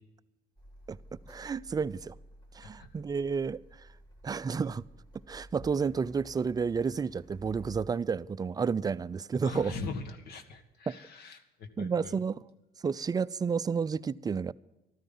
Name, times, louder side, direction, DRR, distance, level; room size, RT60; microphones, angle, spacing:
Car, 0.6-7.8, right 1 dB, 25° left, 4.5 m, -53 dB
voice 1, 0.9-2.2 2.5-3.9 4.2-4.8 5.3-9.7 10.9-11.0 11.8-12.4 12.8-14.5, right 5 dB, 20° right, 0.4 m, -31 dB
voice 2, 9.4-12.2, left 3 dB, 70° left, 1.8 m, -41 dB
13.5 x 13.0 x 5.5 m
cardioid pair, 110°, 17 cm